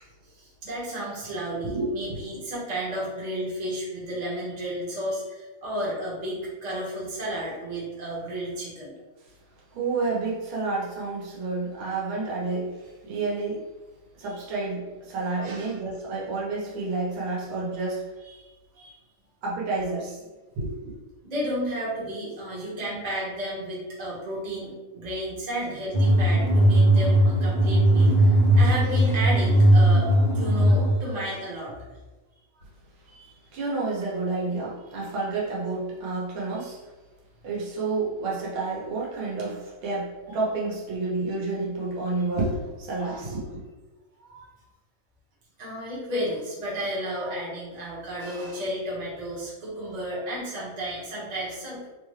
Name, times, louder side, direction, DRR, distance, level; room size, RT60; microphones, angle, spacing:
voice 1, 0.2-8.9 14.3-14.4 15.4-15.7 18.3-19.0 21.2-30.1 30.3-31.8 33.1-33.4 43.0-43.2 44.2-44.5 45.6-51.8, right 1 dB, 30° right, -7 dB, 0.8 m, -32 dB
voice 2, 1.6-2.2 9.7-12.7 13.0-13.6 14.2-18.1 19.4-20.2 20.6-20.9 33.5-36.8 37.4-43.6, right 3 dB, 90° right, -4 dB, 1.8 m, -30 dB
sound 1, 25.9-30.9, right 1 dB, 55° right, 0.5 m, -18 dB
3.8 x 2.3 x 3.2 m, 1.2 s
omnidirectional pair, 2.2 m